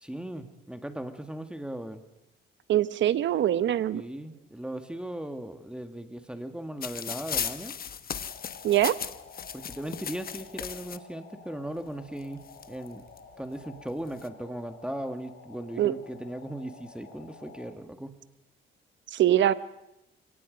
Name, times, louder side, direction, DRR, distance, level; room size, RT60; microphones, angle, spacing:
voice 1, 0.0-2.0 3.9-7.8 9.5-13.0 13.4-18.2, right 1 dB, 5° right, 7 dB, 1.7 m, -38 dB
voice 2, 2.7-4.0 8.6-8.9 15.8-15.9 19.1-19.5, right 12 dB, 70° right, 15 dB, 1.0 m, -23 dB
sound 1, 6.8-11.0 11.9-12.0 12.2-13.2 13.9-14.3, left 8 dB, 50° left, 1.1 m, -36 dB
sound 2, 8.1-17.7, left 4 dB, 70° left, 6.8 m, -51 dB
29.5 x 18.0 x 5.2 m, 0.87 s
cardioid pair, 90°, 20 cm